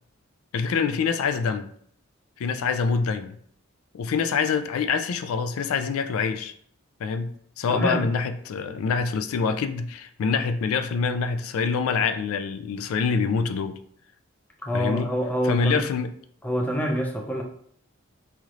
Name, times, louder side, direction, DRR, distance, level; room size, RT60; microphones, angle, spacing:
voice 1, 0.5-1.7 2.4-3.4 3.9-6.5 7.0-13.8 14.7-15.1 15.4-16.1, left 5 dB, 90° left, 9 dB, 0.3 m, -25 dB
voice 2, 7.7-8.0 14.6-15.8 16.4-17.4, equal, 10° left, 1 dB, 0.4 m, -26 dB
4.1 x 3.1 x 2.5 m, 0.63 s
head